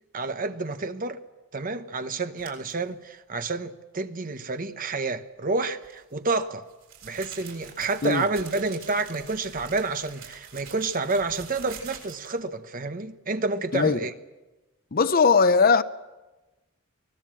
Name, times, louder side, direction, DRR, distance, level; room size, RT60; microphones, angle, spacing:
voice 1, 0.1-1.2 1.5-6.6 7.0-14.1, right 3 dB, 40° right, 1.0 m, -29 dB
sound 1, 2.4-2.7 5.8-12.4, right 7 dB, 80° right, 6.9 m, -45 dB
voice 2, 14.9-15.8, left 5 dB, 45° left, 0.7 m, -19 dB
24.5 x 19.0 x 7.5 m
head